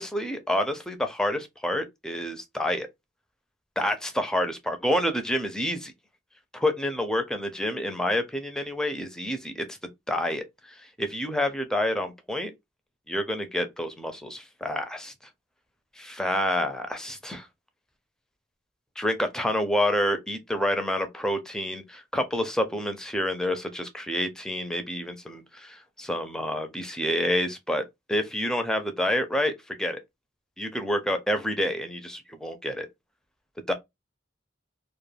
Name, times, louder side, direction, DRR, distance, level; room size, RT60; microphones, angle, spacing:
voice 1, 0.0-2.9 3.8-5.9 6.5-9.8 10.1-12.5 13.1-15.1 16.0-17.5 19.0-27.8 28.1-29.5 29.8-30.0 30.6-32.9 33.7-33.8, left 1 dB, 5° left, 0.4 m, -28 dB
2.2 x 2.2 x 3.2 m
head